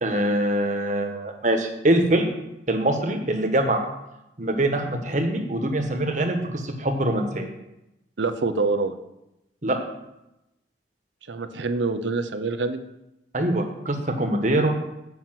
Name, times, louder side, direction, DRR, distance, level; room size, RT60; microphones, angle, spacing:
voice 1, 0.0-2.2 2.7-3.9 4.4-7.5 9.6-9.8 13.3-14.8, right 1 dB, 45° right, 4 dB, 1.3 m, -23 dB
voice 2, 8.2-9.0 11.3-12.8, right 3 dB, 90° right, 10 dB, 0.8 m, -25 dB
7.9 x 5.7 x 7.5 m, 0.90 s
head